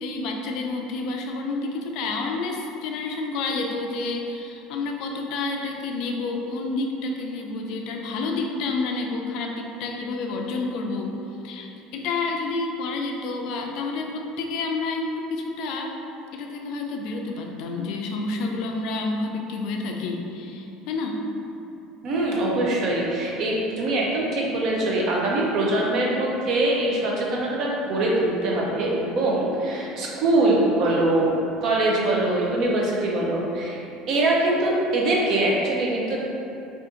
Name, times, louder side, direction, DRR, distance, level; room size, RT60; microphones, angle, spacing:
voice 1, 0.0-11.1 11.4-15.9 16.3-21.2, left 3 dB, 60° left, 2 dB, 0.3 m, -29 dB
voice 2, 22.0-33.8 34.1-36.2, right 2 dB, 50° right, -3 dB, 0.6 m, -23 dB
2.5 x 2.5 x 3.7 m, 2.8 s
cardioid pair, 150°, 0 cm